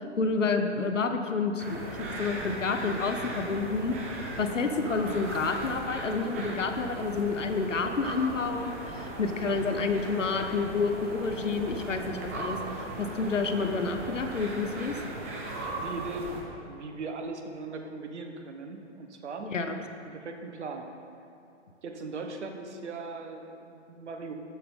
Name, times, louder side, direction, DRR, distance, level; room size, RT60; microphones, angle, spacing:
voice 1, 0.2-4.0 4.4-12.6 13.0-15.0 19.5-19.7, left 4 dB, 85° left, 7 dB, 0.9 m, -29 dB
sound 1, 1.6-16.4, right 2 dB, 10° right, 0.4 m, -38 dB
voice 2, 15.6-16.4 16.6-19.5 20.0-20.9 21.8-24.3, right 3 dB, 70° right, 5 dB, 1.0 m, -39 dB
13.5 x 5.7 x 3.7 m, 2.6 s
figure-of-eight pair, 130°, 36 cm